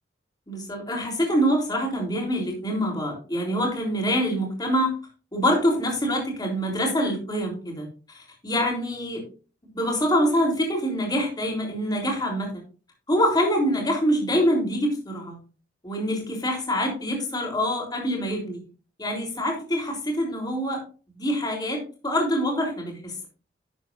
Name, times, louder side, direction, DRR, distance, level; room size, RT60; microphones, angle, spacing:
voice 1, 0.5-4.9 5.3-9.2 9.7-12.6 13.1-15.4 15.8-18.6 19.0-20.8 21.1-23.3, equal, 25° left, -1 dB, 3.6 m, -25 dB
11.5 x 8.0 x 2.6 m, 0.36 s
head